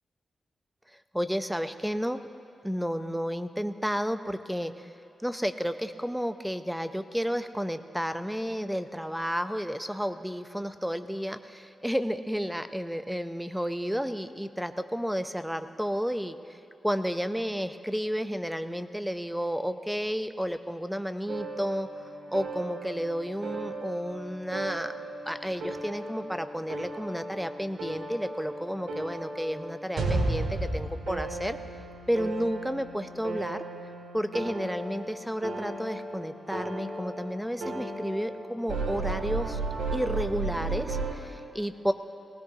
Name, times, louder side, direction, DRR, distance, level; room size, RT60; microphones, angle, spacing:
voice 1, 1.1-2.3 2.6-4.9 5.2-16.6 16.8-21.9 22.3-24.9 25.3-31.6 32.1-33.6 34.1-39.6 39.9-41.9, equal, ahead, 9 dB, 0.7 m, -31 dB
sound 1, 21.3-41.1, right 2 dB, 85° right, 2.5 m, -35 dB
20.0 x 19.0 x 2.9 m, 2.8 s
cardioid pair, 85°, 0 cm